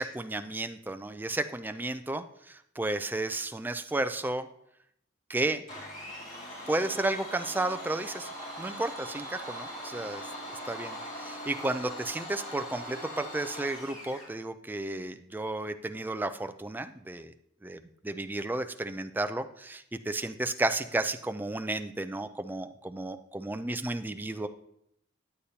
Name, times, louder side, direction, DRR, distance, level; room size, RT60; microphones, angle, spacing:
voice 1, 0.0-4.5 5.3-5.6 6.7-8.3 8.6-10.2 10.7-17.3 17.6-17.8 18.0-24.5, right 2 dB, 10° right, 8 dB, 0.3 m, -33 dB
Domestic sounds home sounds, 5.7-14.3, equal, 40° left, 2.3 m, -41 dB
10.0 x 8.1 x 2.8 m, 0.74 s
head